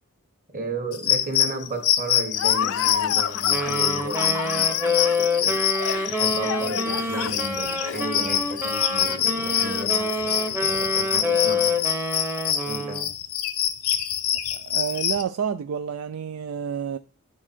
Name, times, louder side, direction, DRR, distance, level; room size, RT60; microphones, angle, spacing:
voice 1, 0.5-5.6 6.1-11.9 12.7-13.1, right 2 dB, 40° right, 1.6 m, -34 dB
sound 1, 0.9-15.2, left 10 dB, 80° left, 0.8 m, -25 dB
Laughter, 2.3-10.6, left 9 dB, 65° left, 0.4 m, -32 dB
Wind instrument woodwind instrument, 3.5-13.1, left 2 dB, 10° right, 0.9 m, -27 dB
voice 2, 14.5-17.0, right 7 dB, 75° right, 0.4 m, -29 dB
9.8 x 4.7 x 4.3 m
head